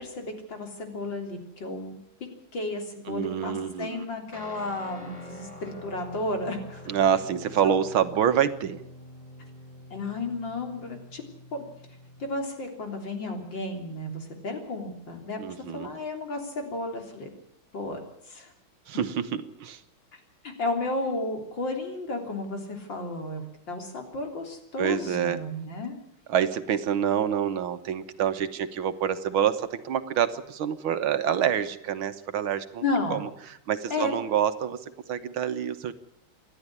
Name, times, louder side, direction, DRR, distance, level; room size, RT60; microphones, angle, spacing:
voice 1, 0.0-2.0 2.5-6.8 7.6-7.7 9.9-11.2 11.5-11.7 12.2-15.4 15.7-17.3 17.7-18.0 18.2-18.5 20.1-26.0 32.8-33.3 33.9-34.1, left 2 dB, 60° left, 4 dB, 4.2 m, -33 dB
voice 2, 3.1-4.1 6.9-8.8 15.4-16.0 18.9-19.8 24.8-25.4 26.3-32.8 33.1-33.3 33.7-34.8 35.1-35.9, right 9 dB, 75° right, 10 dB, 1.9 m, -27 dB
Guitar, 4.3-12.5, left 1 dB, 15° left, 3.3 m, -46 dB
28.0 x 11.5 x 9.8 m, 0.74 s
omnidirectional pair, 2.3 m